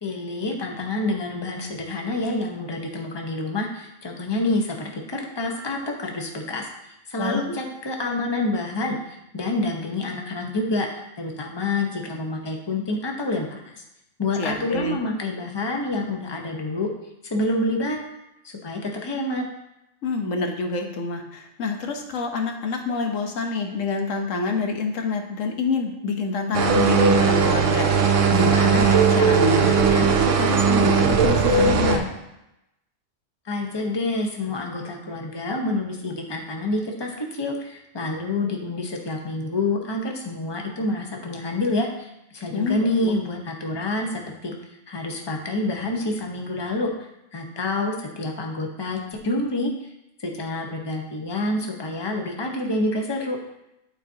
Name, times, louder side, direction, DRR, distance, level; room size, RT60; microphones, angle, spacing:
voice 1, 0.0-10.9 11.2-13.8 14.2-16.9 17.2-18.0 18.4-19.4 33.4-44.5 44.9-49.9 50.2-53.4, left 2 dB, 25° left, 1 dB, 0.9 m, -28 dB
voice 2, 7.2-7.6 14.4-15.0 20.0-32.1 42.5-43.1, left 4 dB, 85° left, 4 dB, 1.3 m, -27 dB
sound 1, 26.5-32.0, right 5 dB, 75° right, 1.1 m, -18 dB
11.5 x 4.4 x 2.8 m, 0.87 s
omnidirectional pair, 1.3 m